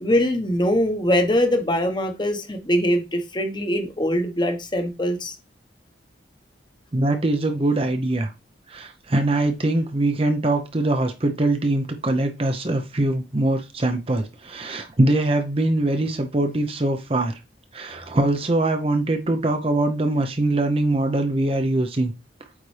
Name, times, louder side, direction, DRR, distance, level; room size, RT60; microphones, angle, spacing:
voice 1, 0.0-5.3, equal, 25° left, 1.0 m, -22 dB
voice 2, 6.9-8.3 8.7-17.4 17.7-22.1, right 2 dB, 30° right, 0.6 m, -22 dB
8.5 x 4.1 x 3.2 m
head